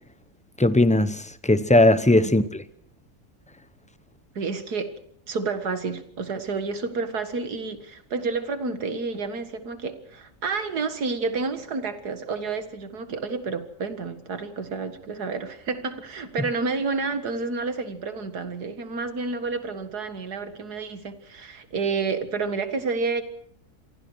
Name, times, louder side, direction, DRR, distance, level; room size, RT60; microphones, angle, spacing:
voice 1, 0.6-2.6, left 1 dB, 10° left, 0.4 m, -19 dB
voice 2, 4.4-4.9 5.3-23.2, right 4 dB, 80° right, 2.3 m, -30 dB
28.0 x 23.5 x 4.7 m
omnidirectional pair, 1.7 m